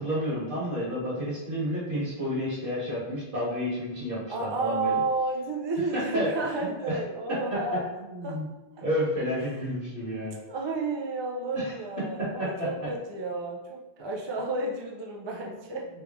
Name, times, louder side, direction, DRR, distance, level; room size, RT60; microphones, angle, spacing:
voice 1, 0.0-5.0 5.9-6.3 6.9-7.0 7.5-8.4 8.8-10.4 11.5-11.7 12.2-12.5, equal, 60° right, -8 dB, 1.8 m, -30 dB
voice 2, 4.3-7.8 8.2-8.4 9.4-9.6 10.5-15.9, right 3 dB, 40° right, 0 dB, 0.4 m, -31 dB
3.6 x 3.4 x 3.0 m, 1.0 s
omnidirectional pair, 1.0 m